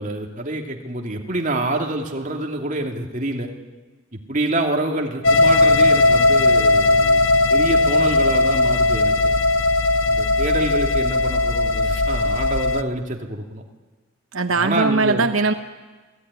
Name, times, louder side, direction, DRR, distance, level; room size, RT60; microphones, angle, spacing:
voice 1, 0.0-3.5 4.1-7.2 7.5-9.3 10.1-13.6 14.6-15.2, right 1 dB, 40° right, 2 dB, 2.6 m, -26 dB
sound 1, 5.2-12.8, left 2 dB, 65° left, 1.1 m, -17 dB
voice 2, 14.3-15.5, right 3 dB, 80° right, 9 dB, 1.0 m, -20 dB
27.5 x 18.0 x 9.8 m, 1.3 s
head